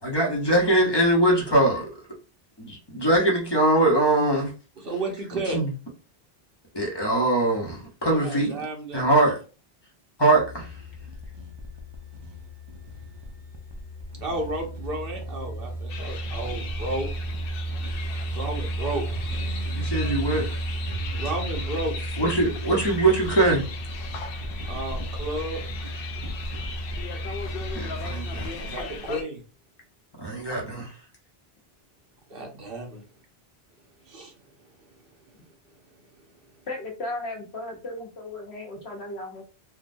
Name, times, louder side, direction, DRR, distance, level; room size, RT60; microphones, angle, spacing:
voice 1, 0.0-1.9 2.6-4.5 5.5-5.7 6.7-8.6 8.9-9.4 10.2-10.7 19.7-20.6 22.2-23.6 27.7-28.7 30.2-30.9, right 1 dB, 25° left, 0.9 m, -22 dB
voice 2, 4.8-5.6 8.1-9.3 14.2-17.1 18.3-19.0 21.1-21.9 24.7-25.6 28.5-29.4 32.3-33.0 34.1-34.3 34.7-34.8 36.2-36.3, right 2 dB, 65° right, 1.1 m, -32 dB
sound 1, 10.3-28.5, right 2 dB, 35° right, 0.4 m, -33 dB
sound 2, 15.9-29.2, left 4 dB, 65° left, 0.7 m, -37 dB
voice 3, 36.7-39.4, left 2 dB, 85° left, 1.2 m, -35 dB
3.5 x 2.3 x 2.6 m
omnidirectional pair, 1.0 m